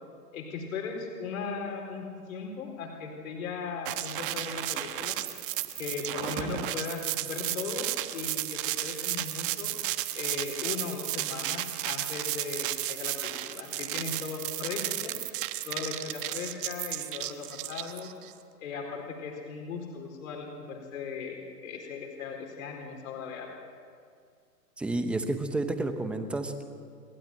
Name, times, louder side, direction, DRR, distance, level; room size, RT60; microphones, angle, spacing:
voice 1, 0.3-5.2 5.8-9.7 10.1-15.1 15.6-18.1 18.6-23.5, left 5 dB, 55° left, 1 dB, 4.3 m, -38 dB
sound 1, 3.9-18.3, right 15 dB, 35° right, 1.2 m, -33 dB
voice 2, 24.8-26.6, right 2 dB, ahead, 7 dB, 0.8 m, -30 dB
29.0 x 13.0 x 9.0 m, 2.2 s
hypercardioid pair, 145°, 48 cm